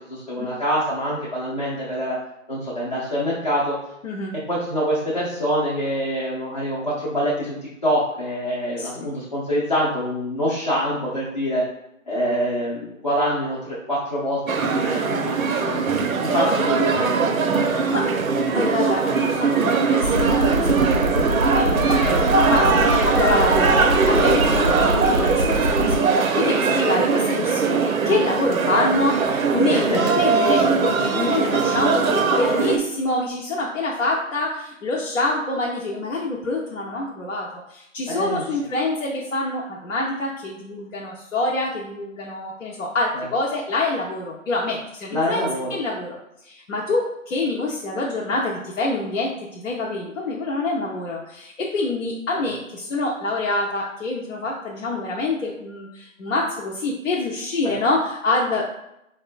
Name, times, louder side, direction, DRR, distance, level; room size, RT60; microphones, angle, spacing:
voice 1, 0.1-2.2 2.5-3.8 4.5-7.6 7.8-11.6 12.1-15.8 16.2-17.9 22.0-22.1 23.0-23.1 26.7-26.8 29.7-30.0 38.1-38.4 43.1-43.3 45.1-45.7 52.3-52.5 57.6-57.7, equal, 30° left, -9 dB, 0.5 m, -25 dB
voice 2, 8.8-9.1 17.9-18.1 18.5-22.2 22.5-45.4 45.7-46.2 46.4-58.7, left 2 dB, 70° left, -3 dB, 0.6 m, -26 dB
sound 1, 14.5-32.8, right 5 dB, 90° right, 0.6 m, -20 dB
sound 2, 20.0-26.0, equal, 45° right, 0.4 m, -24 dB
4.2 x 2.2 x 2.4 m, 0.83 s
figure-of-eight pair, 160°, 40 cm